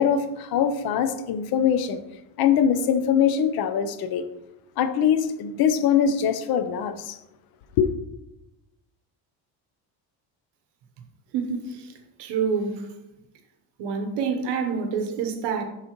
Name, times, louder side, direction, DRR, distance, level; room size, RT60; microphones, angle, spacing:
voice 1, 0.0-2.0 2.4-4.2 4.8-7.2 7.8-7.9, left 8 dB, 60° left, 0.8 m, -22 dB
voice 2, 11.3-11.9 12.2-12.9 13.8-15.6, right 6 dB, 70° right, 1.1 m, -27 dB
11.5 x 4.1 x 3.1 m
cardioid pair, 130°, 42 cm